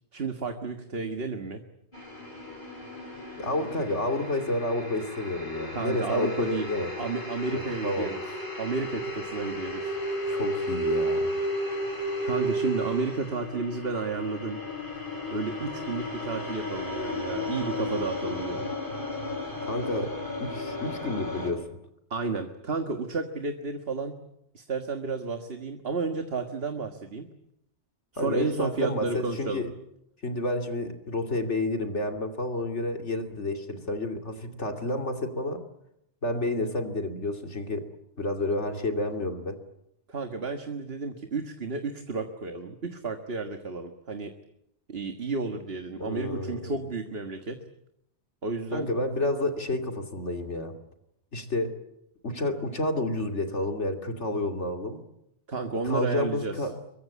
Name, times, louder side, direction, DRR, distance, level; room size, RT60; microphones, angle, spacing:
voice 1, 0.1-1.6 5.7-6.7 7.0-8.2 8.6-10.0 12.2-14.6 15.3-18.7 22.1-24.2 24.5-27.2 28.1-29.6 40.1-44.3 44.9-47.6 48.4-48.9 55.5-56.5, right 4 dB, 60° right, 6 dB, 1.9 m, -32 dB
sound 1, 1.9-21.5, left 1 dB, 45° left, 5.3 m, -33 dB
voice 2, 3.4-6.9 7.5-8.1 10.3-11.3 19.6-20.1 20.4-21.8 28.2-29.7 30.2-35.6 36.2-37.9 38.2-39.6 46.0-46.7 48.7-50.8 51.3-51.8 52.2-55.0 55.8-56.7, left 2 dB, 80° left, 5 dB, 3.1 m, -30 dB
25.5 x 23.0 x 8.5 m, 0.80 s
omnidirectional pair, 1.2 m